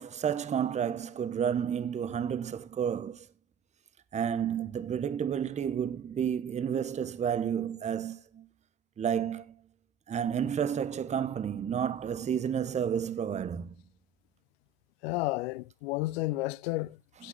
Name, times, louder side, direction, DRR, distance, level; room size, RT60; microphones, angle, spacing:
voice 1, 0.0-3.3 4.1-8.5 9.0-9.5 10.1-13.7 17.2-17.3, right 8 dB, 20° right, 1.0 m, -31 dB
voice 2, 15.0-17.3, left 20 dB, 60° left, 0.7 m, -32 dB
17.0 x 6.0 x 3.9 m
supercardioid pair, 120°, 35 cm